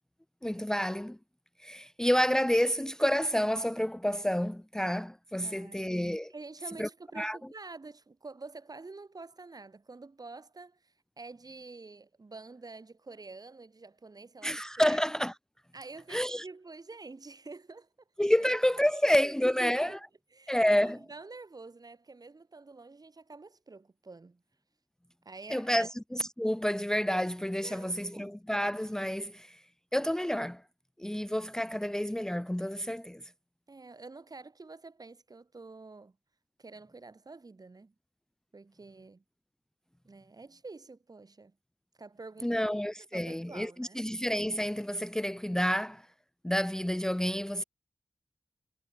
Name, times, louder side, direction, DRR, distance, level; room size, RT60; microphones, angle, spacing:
voice 1, 0.4-1.2 1.6-6.3 6.8-6.9 7.2-7.4 14.4-15.3 16.1-16.4 18.2-20.0 20.5-21.0 25.5-29.6 29.9-30.6 31.0-33.3 42.4-46.1 46.4-47.6, equal, 5° left, 0.6 m, -29 dB
voice 2, 5.4-5.9 6.3-15.0 15.7-17.9 18.9-20.0 20.3-24.4 25.3-25.9 27.6-28.4 33.7-36.2 36.6-37.9 38.5-39.2 40.0-41.6 42.0-42.7 43.0-44.1, right 3 dB, 50° right, 3.6 m, -48 dB
cardioid pair, 55°, 9 cm